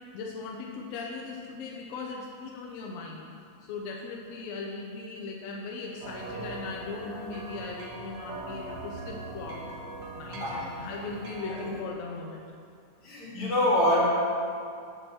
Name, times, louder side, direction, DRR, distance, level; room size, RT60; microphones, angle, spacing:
voice 1, 0.1-3.3 3.6-9.7 10.1-12.4, left 3 dB, 80° left, -1 dB, 1.5 m, -38 dB
sound 1, 6.0-11.8, right 2 dB, 70° right, 1.9 m, -41 dB
voice 2, 13.0-14.1, left 1 dB, 45° left, -8 dB, 3.0 m, -25 dB
7.4 x 5.3 x 6.3 m, 2.3 s
omnidirectional pair, 3.7 m